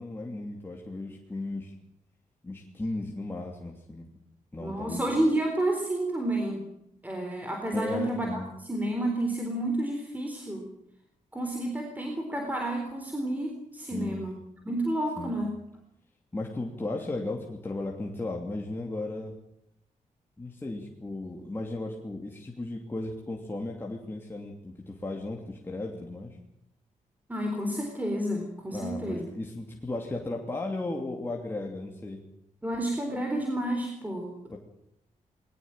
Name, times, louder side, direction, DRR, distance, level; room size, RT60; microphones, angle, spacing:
voice 1, 0.0-1.7 2.4-4.1 4.5-5.0 7.7-8.5 13.8-14.3 15.2-15.4 16.3-19.4 20.4-26.4 28.7-32.2 34.5-34.6, left 2 dB, 15° left, 0 dB, 2.9 m, -35 dB
voice 2, 4.6-6.7 7.0-10.7 11.3-14.4 14.7-15.5 27.3-29.3 32.6-34.4, right 1 dB, 10° right, 2 dB, 3.9 m, -30 dB
21.0 x 19.0 x 9.0 m, 0.79 s
wide cardioid pair, 130°, 14 cm